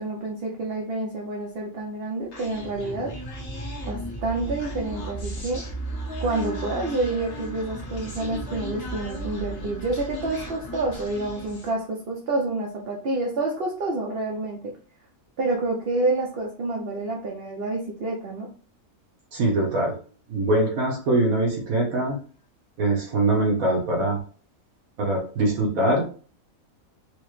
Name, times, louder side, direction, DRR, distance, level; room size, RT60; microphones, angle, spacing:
voice 1, 0.0-3.1 3.8-5.6 6.2-14.8 15.4-18.5, right 2 dB, 55° right, -1 dB, 0.8 m, -28 dB
Human voice, 2.3-11.8, right 1 dB, 75° left, 1.6 m, -35 dB
voice 2, 19.3-20.0 20.3-22.2 22.8-24.2 25.0-26.0, right 2 dB, 75° right, -1 dB, 1.3 m, -23 dB
4.7 x 2.1 x 3.0 m, 0.40 s
omnidirectional pair, 1.5 m